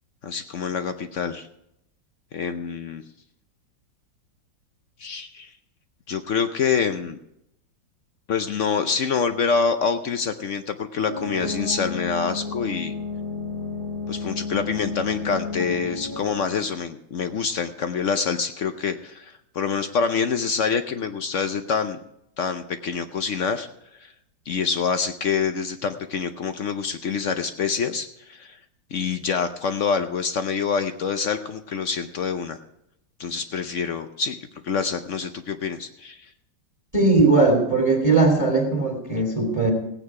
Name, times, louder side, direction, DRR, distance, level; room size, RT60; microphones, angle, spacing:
voice 1, 0.2-1.5 2.3-3.0 5.0-5.5 6.1-7.2 8.3-12.9 14.1-22.0 22.4-23.7 24.0-24.1 24.5-28.6 28.9-32.6 33.2-34.4 34.6-36.3, left 6 dB, 65° left, 8 dB, 0.7 m, -26 dB
sound 1, 11.1-16.4, left 4 dB, 30° left, 1.6 m, -32 dB
voice 2, 36.9-39.7, right 3 dB, 10° right, 1 dB, 2.7 m, -19 dB
16.5 x 9.0 x 4.8 m, 0.80 s
omnidirectional pair, 2.0 m